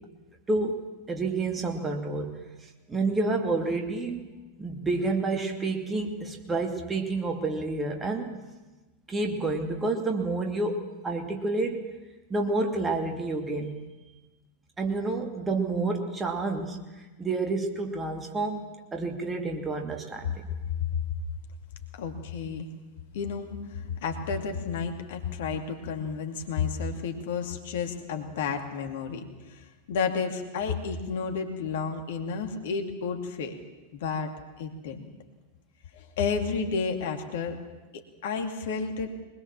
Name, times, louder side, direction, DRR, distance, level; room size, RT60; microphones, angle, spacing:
voice 1, 0.5-0.8 1.1-2.4 2.9-4.3 4.6-8.4 9.1-11.8 12.3-13.8 14.8-16.8 17.2-20.3, right 3 dB, 15° right, 3 dB, 2.7 m, -29 dB
voice 2, 21.9-22.7 23.1-33.6 33.9-34.3 34.6-35.1 35.9-37.6 37.9-39.2, left 5 dB, 55° left, 4 dB, 2.6 m, -31 dB
23.5 x 21.0 x 7.4 m, 1.2 s
figure-of-eight pair, 90°, 0 cm